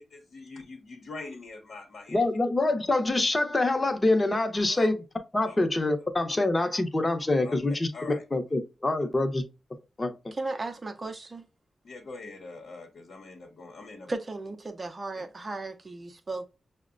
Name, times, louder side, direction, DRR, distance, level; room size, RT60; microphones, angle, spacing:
voice 1, 0.1-2.2 4.7-4.9 5.4-5.6 7.4-7.6 7.9-8.2 11.8-14.1 15.1-15.3, left 3 dB, 70° left, 0.8 m, -43 dB
voice 2, 2.1-5.0 5.3-7.9 8.3-9.4 10.0-10.3, left 2 dB, 30° left, 0.7 m, -25 dB
voice 3, 10.3-11.5 14.1-16.5, right 2 dB, 35° right, 0.5 m, -35 dB
5.7 x 2.1 x 2.4 m
cardioid pair, 70°, 0 cm